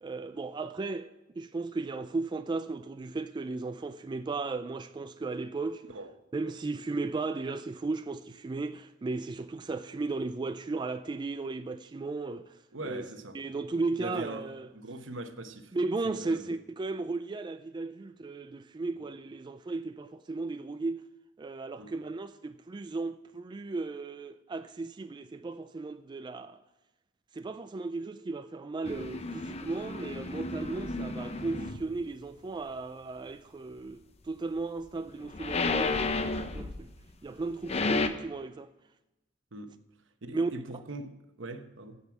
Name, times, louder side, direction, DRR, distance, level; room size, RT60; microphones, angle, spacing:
voice 1, 0.0-5.8 6.3-13.1 13.3-14.7 15.7-21.0 21.4-26.6 27.3-36.9 37.2-38.7 40.3-40.5, right 3 dB, 25° right, 0.3 m, -35 dB
voice 2, 12.7-13.4 14.0-14.5 14.7-15.7 16.0-16.5 21.8-21.9 39.5-39.8 40.2-42.0, right 2 dB, 75° right, 1.0 m, -41 dB
sound 1, 28.8-31.8 35.1-37.0 37.4-38.1, left 3 dB, 35° left, 0.6 m, -32 dB
14.5 x 5.4 x 6.0 m
head